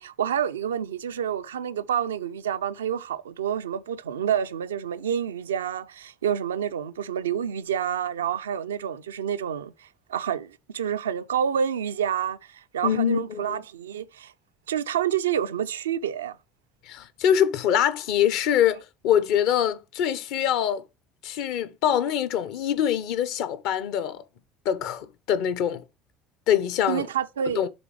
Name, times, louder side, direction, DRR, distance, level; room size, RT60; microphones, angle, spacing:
voice 1, 0.0-14.3 14.7-16.4 26.9-27.6, right 9 dB, 75° right, 0.4 m, -28 dB
voice 2, 12.8-13.6 16.9-20.8 21.2-24.2 24.6-25.8 26.5-27.1 27.6-27.7, left 9 dB, 60° left, 0.8 m, -24 dB
7.0 x 3.6 x 4.7 m
figure-of-eight pair, 65°, 0 cm